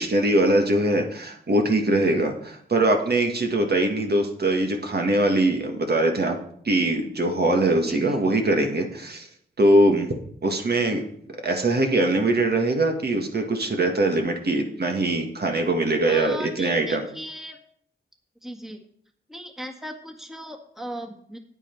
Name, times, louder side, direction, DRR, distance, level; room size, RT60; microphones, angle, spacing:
voice 1, 0.0-6.4 6.6-9.3 9.6-10.1 10.4-11.0 11.4-17.0, right 1 dB, 50° right, 3 dB, 1.8 m, -22 dB
voice 2, 7.8-8.2 16.0-17.6 18.4-18.8 19.3-21.4, equal, ahead, 3 dB, 1.7 m, -37 dB
9.1 x 8.8 x 4.6 m, 0.65 s
cardioid pair, 50°, 21 cm